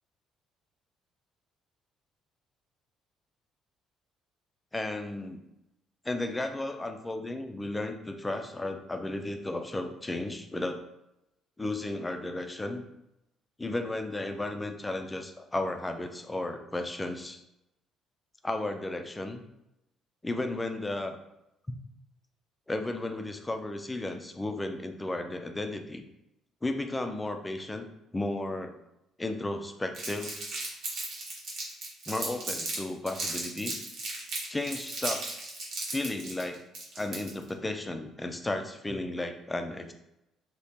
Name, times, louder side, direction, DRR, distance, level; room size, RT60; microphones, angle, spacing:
voice 1, 4.7-5.4 6.0-10.8 11.6-12.8 13.6-17.4 18.4-19.4 20.2-21.2 22.7-26.0 26.6-27.9 28.1-28.7 29.2-30.4 32.1-33.7 34.5-35.4 35.9-36.6 37.0-39.9, left 2 dB, 10° left, 6 dB, 0.3 m, -34 dB
Crumpling crinkling, 29.9-32.8 33.1-37.5, right 2 dB, 65° right, 1.0 m, -36 dB
2.8 x 2.8 x 3.5 m, 0.86 s
cardioid pair, 140°, 0 cm